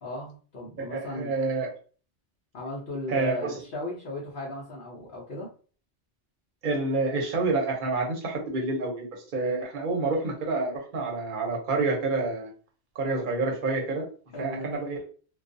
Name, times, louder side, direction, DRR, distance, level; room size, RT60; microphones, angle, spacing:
voice 1, 0.0-1.4 2.5-5.5 14.3-14.8, left 1 dB, 55° left, -6 dB, 0.8 m, -36 dB
voice 2, 0.8-1.7 3.1-3.5 6.6-12.5 12.9-14.0 14.4-15.1, right 3 dB, 50° right, 1 dB, 0.9 m, -28 dB
2.3 x 2.3 x 2.5 m, 0.40 s
omnidirectional pair, 1.2 m